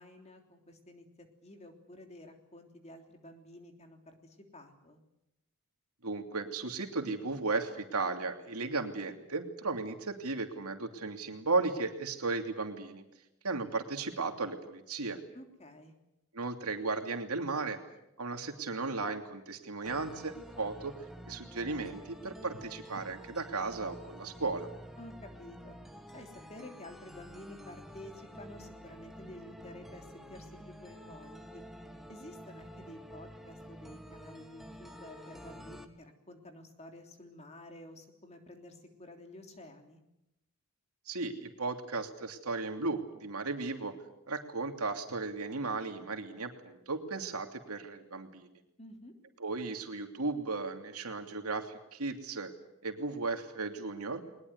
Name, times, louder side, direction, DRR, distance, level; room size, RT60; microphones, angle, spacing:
voice 1, 0.0-5.0 15.3-15.9 25.0-25.8 26.1-31.6 32.1-40.0 48.8-49.1, left 1 dB, 30° left, 4 dB, 3.4 m, -51 dB
voice 2, 6.0-13.0 13.4-15.2 16.3-17.8 18.2-20.9 21.3-24.7 41.1-43.9 44.3-48.5 49.4-52.5 52.8-54.2, right 3 dB, 90° right, 5 dB, 2.9 m, -35 dB
sound 1, 19.9-35.9, equal, ahead, 1.8 m, -49 dB
21.5 x 20.5 x 9.6 m, 0.86 s
head